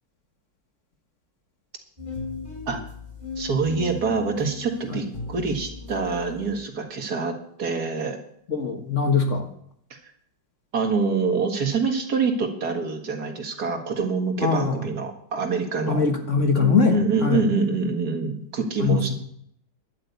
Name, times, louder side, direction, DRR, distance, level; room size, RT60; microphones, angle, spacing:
sound 1, 2.0-6.7, left 2 dB, 25° left, 3.0 m, -37 dB
voice 1, 3.4-8.2 9.9-10.0 10.7-16.0 16.6-19.1, right 4 dB, 60° right, 4 dB, 2.2 m, -26 dB
voice 2, 8.5-9.5 14.4-14.9 15.9-17.5 18.8-19.1, left 5 dB, 45° left, 5 dB, 1.6 m, -22 dB
11.5 x 8.6 x 8.2 m, 0.68 s
omnidirectional pair, 1.9 m